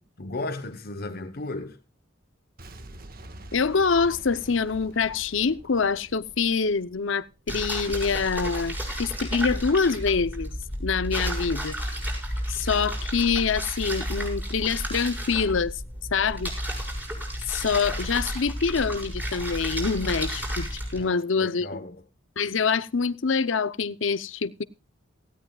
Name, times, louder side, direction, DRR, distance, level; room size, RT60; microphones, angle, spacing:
voice 1, 0.2-1.8 20.9-22.0, left 2 dB, 50° left, 1.1 m, -35 dB
Boom, 2.6-7.5, right 1 dB, 50° right, 1.6 m, -46 dB
voice 2, 3.5-10.5 10.8-11.8 12.5-15.8 16.1-16.5 17.5-21.7 22.4-24.6, left 5 dB, 70° left, 0.7 m, -25 dB
sound 1, 7.5-21.0, equal, 10° right, 6.3 m, -32 dB
18.5 x 16.5 x 2.4 m
head